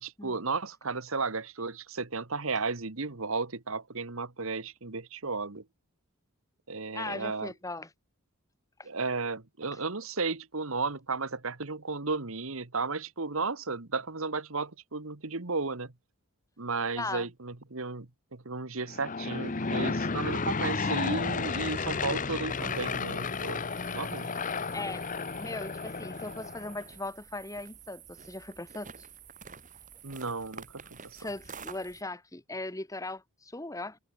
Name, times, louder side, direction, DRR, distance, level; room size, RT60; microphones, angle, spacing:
voice 1, 0.0-5.6 6.7-7.5 8.8-15.9 16.6-23.6 23.9-24.3 30.0-31.3, right 4 dB, 70° right, 1.6 m, -34 dB
voice 2, 6.9-7.9 8.8-8.9 17.0-17.3 24.2-24.4 24.7-25.0 25.4-29.1 31.2-34.0, left 2 dB, 15° left, 1.3 m, -39 dB
Aircraft / Engine, 18.8-26.8, left 4 dB, 35° left, 0.8 m, -32 dB
sound 1, 22.5-32.0, right 6 dB, 35° right, 4.7 m, -50 dB
head